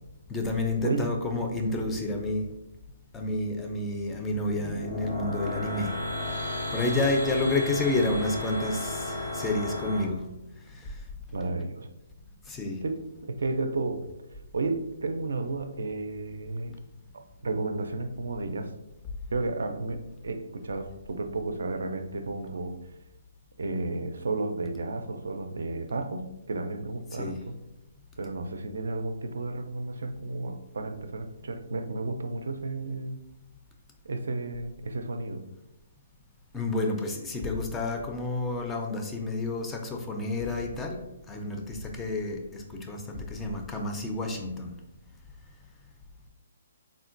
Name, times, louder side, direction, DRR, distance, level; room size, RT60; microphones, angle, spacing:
voice 1, 0.3-2.5 3.1-6.0 6.3-10.2 10.7-11.0 12.5-12.8 27.1-27.4 36.5-41.0 41.3-44.7, left 2 dB, 10° left, 2 dB, 0.3 m, -30 dB
voice 2, 0.8-1.2 11.3-11.9 12.8-14.0 14.5-16.8 17.1-18.7 19.3-22.8 23.6-27.5 28.2-33.2 34.0-35.4, right 3 dB, 80° right, 7 dB, 0.3 m, -32 dB
sound 1, 4.3-10.0, left 1 dB, 90° left, 1.1 m, -33 dB
3.6 x 2.1 x 2.5 m, 0.93 s
hypercardioid pair, 150°, 0 cm